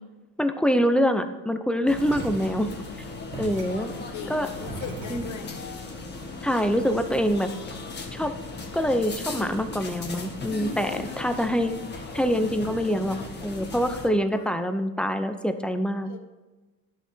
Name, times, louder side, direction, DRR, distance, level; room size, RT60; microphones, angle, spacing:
voice 1, 0.4-2.7 3.4-3.9 4.3-4.5 5.1-5.2 6.4-7.5 8.1-8.3 8.7-11.7 12.1-13.2 13.4-16.2, equal, ahead, 9 dB, 0.4 m, -25 dB
sound 1, 1.9-14.1, left 3 dB, 25° left, 1.3 m, -37 dB
sound 2, 2.0-5.5, right 2 dB, 45° right, 1.9 m, -40 dB
voice 2, 3.8-5.6 6.2-6.3 10.7-11.1 14.1-14.5 16.1-16.2, left 7 dB, 45° left, 7 dB, 1.1 m, -40 dB
11.0 x 7.4 x 2.7 m, 1.2 s
supercardioid pair, 105°, 43 cm